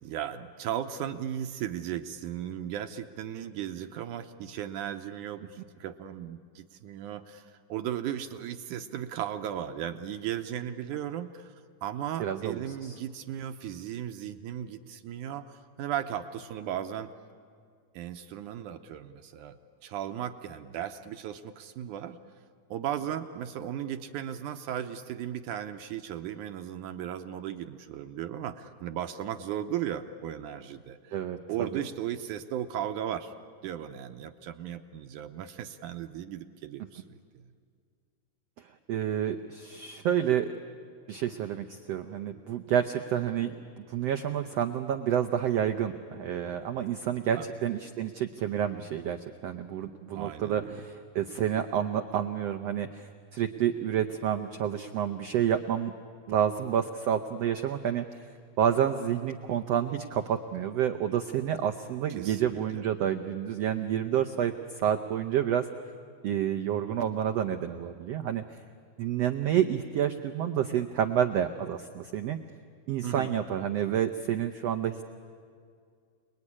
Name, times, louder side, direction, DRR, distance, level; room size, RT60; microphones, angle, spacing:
voice 1, 0.0-11.5 11.8-17.1 17.9-22.2 22.7-31.1 31.5-33.3 33.6-37.2 47.3-47.5 50.2-50.9 62.1-62.9 73.0-73.3, right 10 dB, 75° right, 7 dB, 2.1 m, -36 dB
voice 2, 12.2-12.9 31.1-31.7 38.9-40.5 41.1-43.5 43.9-49.2 49.4-55.9 56.3-58.2 58.6-64.5 64.8-65.6 66.2-68.4 69.0-72.4 72.9-75.0, right 9 dB, 90° right, 6 dB, 1.4 m, -29 dB
29.0 x 20.5 x 9.9 m, 2.2 s
omnidirectional pair, 4.0 m